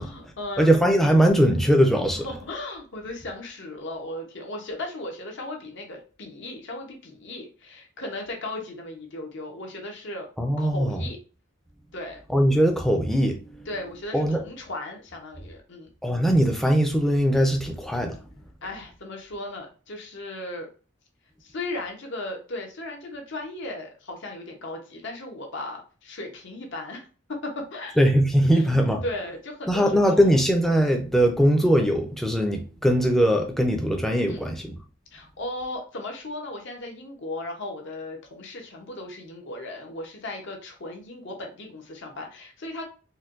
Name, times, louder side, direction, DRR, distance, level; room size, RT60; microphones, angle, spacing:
voice 1, 0.0-0.8 2.1-10.3 10.6-11.2 11.9-12.2 13.7-15.9 18.6-20.7 21.4-27.0 27.3-27.9 28.3-28.7 29.0-30.3 34.3-34.5 35.1-42.8, left 2 dB, 60° left, 0.8 m, -36 dB
voice 2, 0.6-2.3 10.4-11.0 12.3-13.7 14.1-14.4 16.0-18.2 28.0-29.0 29.7-34.7, equal, ahead, 0.5 m, -21 dB
4.3 x 2.2 x 2.5 m
head